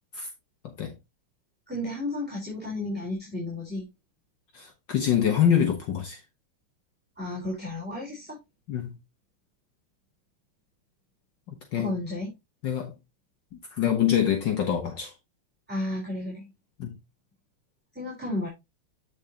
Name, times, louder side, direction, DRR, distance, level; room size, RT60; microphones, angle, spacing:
voice 1, 1.7-3.8 7.2-8.4 11.7-12.3 15.7-16.4 17.9-18.5, left 2 dB, 5° right, 3.8 m, -32 dB
voice 2, 4.5-6.2 8.7-8.9 11.7-11.9 12.6-12.9 13.7-15.1 16.8-16.9, left 9 dB, 60° left, 1.7 m, -25 dB
8.7 x 6.5 x 2.8 m
omnidirectional pair, 2.4 m